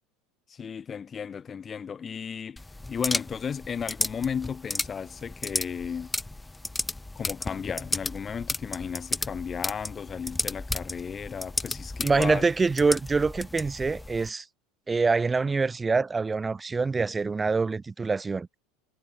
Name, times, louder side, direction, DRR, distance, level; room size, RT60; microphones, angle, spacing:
voice 1, 0.5-2.6 2.9-6.1 7.2-12.5, left 7 dB, 30° left, 6.1 m, -34 dB
sound 1, 2.6-14.3, left 2 dB, 10° left, 6.7 m, -34 dB
voice 2, 12.0-14.4 14.9-18.5, right 4 dB, 20° right, 3.2 m, -25 dB
hypercardioid pair, 80°, 0 cm